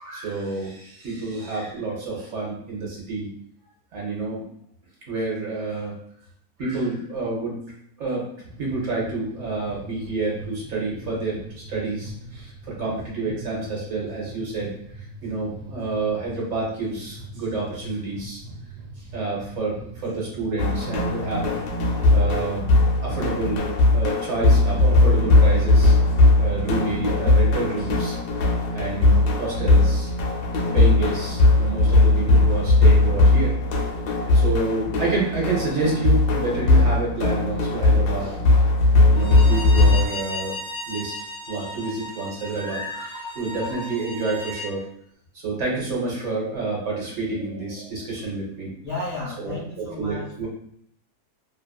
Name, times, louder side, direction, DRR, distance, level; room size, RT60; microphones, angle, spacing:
voice 1, 0.0-3.3 3.9-4.4 5.1-6.0 6.6-7.6 8.0-8.3 8.6-18.4 18.9-21.5 22.1-22.6 23.0-28.2 28.7-30.1 30.7-33.6 34.3-38.4 39.1-40.6 40.9-41.1 41.5-44.9 45.3-48.7 49.4-50.5, right 3 dB, 60° right, -4 dB, 0.9 m, -29 dB
sound 1, 8.4-23.6, right 1 dB, 85° right, 1.1 m, -41 dB
sound 2, 20.6-40.1, left 2 dB, 80° left, 1.1 m, -19 dB
Bowed string instrument, 39.2-44.7, left 1 dB, 65° left, 0.8 m, -35 dB
voice 2, 48.8-50.5, left 2 dB, 40° left, -8 dB, 0.4 m, -33 dB
2.8 x 2.4 x 2.2 m, 0.68 s
omnidirectional pair, 1.6 m